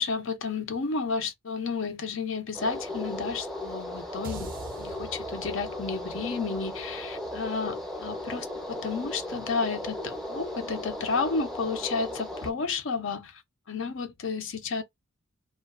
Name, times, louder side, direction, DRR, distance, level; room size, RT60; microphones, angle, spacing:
voice 1, 0.0-4.5 4.8-13.4 13.7-14.8, left 4 dB, 60° left, 0.5 m, -32 dB
sound 1, 2.5-12.5, left 1 dB, ahead, 0.6 m, -36 dB
sound 2, 4.2-8.6, right 4 dB, 40° right, 0.3 m, -46 dB
2.4 x 2.2 x 2.3 m
head